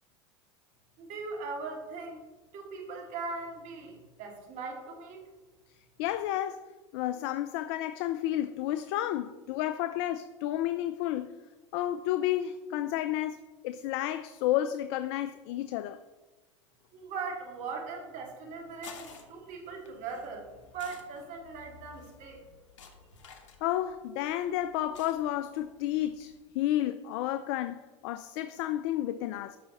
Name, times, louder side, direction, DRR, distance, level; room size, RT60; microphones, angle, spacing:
voice 1, 1.0-5.3 16.9-22.4, right 4 dB, 55° right, 2.1 m, -40 dB
voice 2, 6.0-11.3 11.7-16.0 23.6-29.6, left 13 dB, 60° left, 0.4 m, -31 dB
sound 1, 18.5-26.4, left 5 dB, 85° left, 1.1 m, -54 dB
13.0 x 5.7 x 2.9 m
hypercardioid pair, 90°, 15 cm